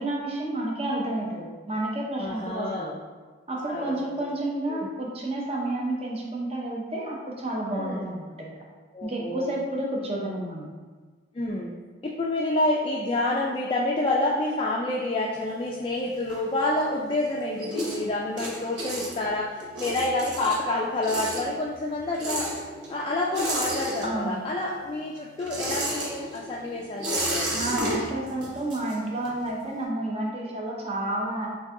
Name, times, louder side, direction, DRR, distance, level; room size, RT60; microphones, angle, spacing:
voice 1, 0.0-2.9 3.5-8.5 9.0-10.7 24.0-24.4 27.5-31.5, right 1 dB, 30° right, -2 dB, 0.7 m, -30 dB
voice 2, 2.2-2.9 3.7-3.9 4.7-4.9 7.7-8.1 8.9-9.5 11.3-11.7 12.0-22.5 22.9-27.6, left 2 dB, 30° left, -2 dB, 0.3 m, -28 dB
sound 1, 15.3-17.0 17.3-24.5 24.8-29.5, right 1 dB, 80° right, 1.1 m, -32 dB
6.5 x 2.6 x 2.6 m, 1.4 s
head